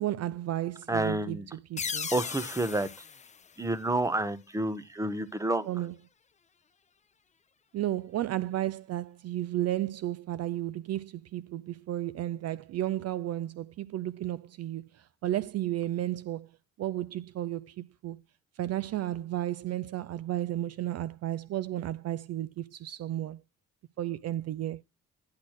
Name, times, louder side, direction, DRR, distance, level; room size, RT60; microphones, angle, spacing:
voice 1, 0.0-1.4 1.7-2.1 5.7-5.9 7.7-16.5 16.8-18.2 18.6-23.4 24.0-24.8, right 13 dB, 55° right, 0.5 m, -33 dB
voice 2, 0.9-1.5 2.1-3.0 3.6-5.7, right 2 dB, 10° right, 1.1 m, -29 dB
sound 1, 1.8-4.3, left 6 dB, 25° left, 0.5 m, -38 dB
10.5 x 4.2 x 6.3 m
cardioid pair, 90°, 30 cm